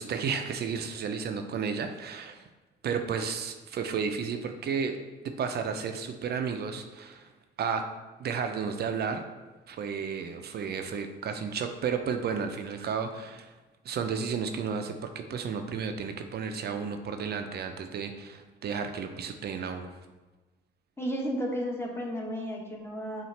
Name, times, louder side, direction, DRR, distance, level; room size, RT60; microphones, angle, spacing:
voice 1, 0.0-2.4 2.8-5.0 5.2-7.3 7.6-7.9 8.2-9.2 9.7-13.5 13.9-19.9, right 6 dB, 55° right, 7 dB, 0.5 m, -32 dB
voice 2, 21.0-23.2, equal, 10° left, -1 dB, 0.9 m, -33 dB
5.5 x 2.4 x 3.2 m, 1.2 s
cardioid pair, 90°, 20 cm